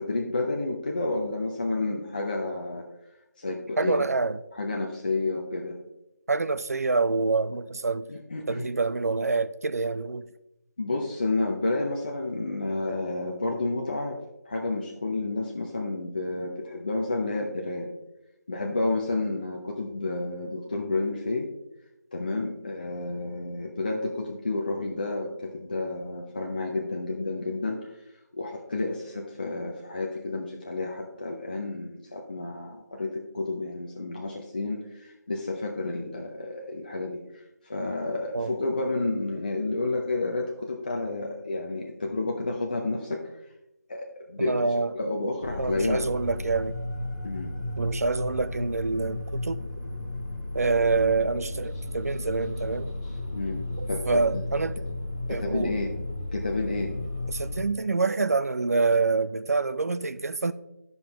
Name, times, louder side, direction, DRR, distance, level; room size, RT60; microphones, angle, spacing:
voice 1, 0.0-2.9 3.4-4.1 4.6-5.8 8.1-8.7 10.8-14.2 14.5-17.9 18.5-21.5 22.1-27.9 28.3-43.2 43.9-46.1 47.2-47.5 53.3-54.0 54.3-54.4 55.3-55.9 56.3-57.0, left 2 dB, 30° left, 0.6 m, -30 dB
voice 2, 3.8-4.4 6.3-8.1 8.5-10.3 38.3-38.6 44.4-44.9 45.6-46.8 47.8-49.6 50.5-52.9 53.8-54.8 55.3-55.8 57.3-60.5, right 4 dB, 60° right, 0.5 m, -26 dB
sound 1, 45.4-57.6, left 2 dB, 10° left, 1.1 m, -34 dB
11.5 x 5.3 x 2.9 m
figure-of-eight pair, 175°, 9 cm